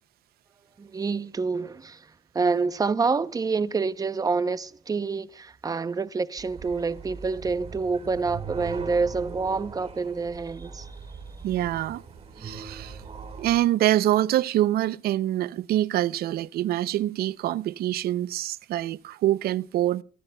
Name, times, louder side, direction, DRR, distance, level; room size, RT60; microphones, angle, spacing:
voice 1, 0.8-2.1 2.3-10.9, right 4 dB, 20° right, 0.7 m, -27 dB
sound 1, 6.4-13.6, right 5 dB, 40° right, 3.5 m, -41 dB
voice 2, 11.4-12.0 12.4-13.0 13.4-20.0, right 13 dB, 65° right, 0.6 m, -25 dB
24.0 x 18.5 x 2.3 m
cardioid pair, 110°, 17 cm